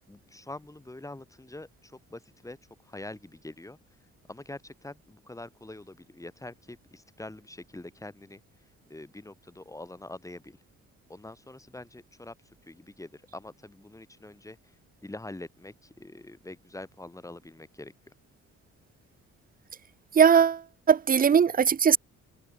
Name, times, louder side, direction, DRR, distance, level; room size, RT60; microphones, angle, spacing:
voice 1, 0.1-2.6 2.9-3.8 4.3-8.4 8.9-10.6 11.1-12.3 12.7-14.6 15.0-17.9, left 2 dB, 10° left, 3.6 m, -44 dB
voice 2, 20.1-20.6 20.9-22.0, right 7 dB, 30° right, 0.6 m, -19 dB
cardioid pair, 90°, 30 cm